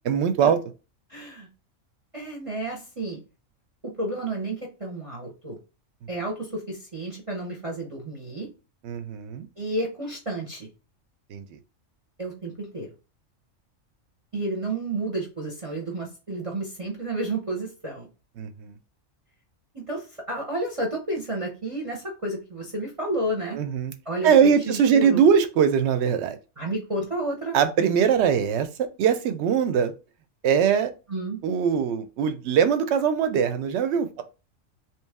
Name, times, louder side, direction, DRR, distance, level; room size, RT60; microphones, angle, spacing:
voice 1, 0.1-0.6 8.8-9.5 11.3-11.4 18.4-18.8 23.5-23.9 24.2-26.4 27.5-29.9 30.4-30.9 31.4-34.2, right 7 dB, 65° right, 10 dB, 0.8 m, -21 dB
voice 2, 1.1-1.5 2.1-3.2 4.0-5.6 6.1-8.5 9.6-10.7 12.2-12.9 14.3-18.1 19.7-23.6 24.1-25.2 26.6-27.5 31.1-31.4, right 2 dB, 30° right, -1 dB, 0.7 m, -31 dB
3.0 x 2.9 x 3.4 m, 0.31 s
omnidirectional pair, 1.3 m